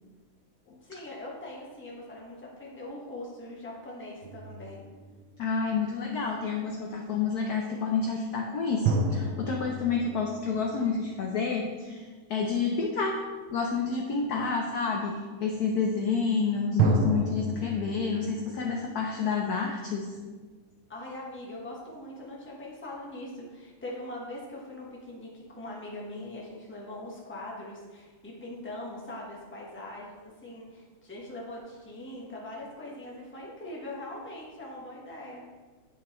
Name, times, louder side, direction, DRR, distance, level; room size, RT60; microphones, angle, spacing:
voice 1, 0.8-4.8 20.9-35.4, left 1 dB, 10° left, -4 dB, 0.9 m, -41 dB
sound 1, 4.2-5.9 8.8-11.5 16.8-19.8, right 2 dB, 75° right, 1.4 m, -31 dB
voice 2, 5.4-13.2 13.5-20.2, left 5 dB, 70° left, 1 dB, 0.9 m, -29 dB
9.6 x 5.0 x 3.1 m, 1.4 s
omnidirectional pair, 2.3 m